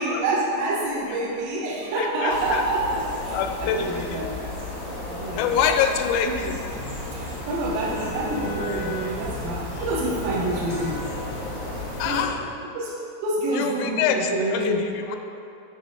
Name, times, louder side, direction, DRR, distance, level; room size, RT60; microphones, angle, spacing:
voice 1, 0.0-4.6 5.1-5.6 6.2-6.6 7.1-11.1 12.0-12.3 12.7-14.9, right 2 dB, 75° right, -6 dB, 2.2 m, -27 dB
voice 2, 2.0-2.6 3.3-4.3 5.3-6.6 12.0-12.4 13.5-15.2, left 7 dB, 85° left, 6 dB, 2.8 m, -25 dB
sound 1, 2.3-12.2, left 2 dB, 55° left, 1.1 m, -34 dB
sound 2, 6.7-12.5, right 1 dB, 50° right, 2.5 m, -38 dB
8.3 x 4.5 x 6.2 m, 2.7 s
omnidirectional pair, 5.2 m